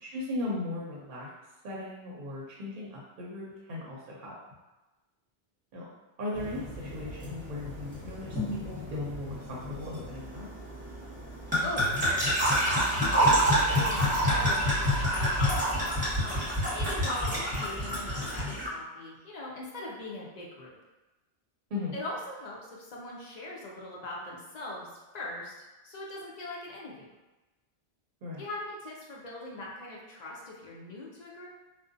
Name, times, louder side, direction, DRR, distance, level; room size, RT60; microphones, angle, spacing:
voice 1, 0.0-1.3 1.6-4.3 5.7-5.9 6.2-10.5 21.7-22.0 28.2-28.4, left 2 dB, 60° right, -5 dB, 0.7 m, -37 dB
sound 1, 6.3-18.7, equal, 10° right, 1.0 m, -28 dB
voice 2, 11.6-12.3 13.0-15.9 16.2-16.4 16.7-20.7 21.9-25.5 25.8-27.1 28.4-31.5, left 1 dB, 55° left, -3 dB, 0.5 m, -40 dB
2.5 x 2.0 x 2.5 m, 1.1 s
omnidirectional pair, 1.0 m